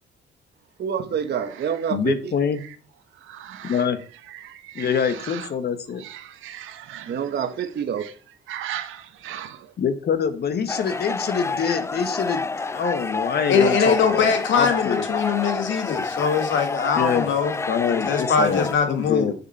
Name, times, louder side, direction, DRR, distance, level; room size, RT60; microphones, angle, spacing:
voice 1, 0.8-2.3 7.1-8.1, right 8 dB, 55° right, 1.3 m, -27 dB
voice 2, 1.9-2.6 3.6-4.0 4.7-6.0 9.8-15.0 17.0-17.3 17.7-19.3, left 6 dB, 55° left, 1.2 m, -25 dB
voice 3, 3.3-3.8 4.3-5.5 6.0-7.2 8.0-8.1 8.5-9.7, right 11 dB, 85° right, 1.0 m, -37 dB
sound 1, 10.7-18.7, left 3 dB, 15° left, 0.3 m, -29 dB
voice 4, 13.5-17.6 17.9-19.3, left 6 dB, 70° left, 1.8 m, -22 dB
7.1 x 6.9 x 4.2 m
cardioid pair, 90°, 20 cm